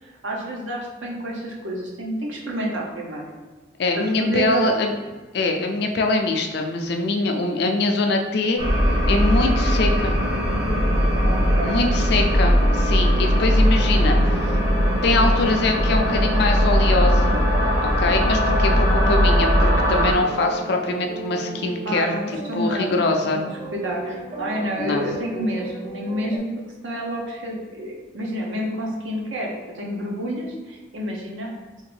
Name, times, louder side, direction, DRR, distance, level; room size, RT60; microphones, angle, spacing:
voice 1, 0.0-3.2 4.0-4.6 11.2-11.8 21.8-26.5 26.8-31.5, equal, 75° right, -2 dB, 0.8 m, -29 dB
voice 2, 3.8-4.9 5.3-8.6 9.1-10.1 11.6-14.6 15.0-17.4 18.0-22.1 22.6-23.4 24.8-25.1, left 2 dB, 55° left, 4 dB, 0.4 m, -23 dB
sound 1, 8.6-20.1, equal, 60° right, 1.1 m, -19 dB
sound 2, 19.8-26.4, right 2 dB, 35° right, 0.4 m, -35 dB
3.5 x 2.5 x 3.3 m, 1.3 s
head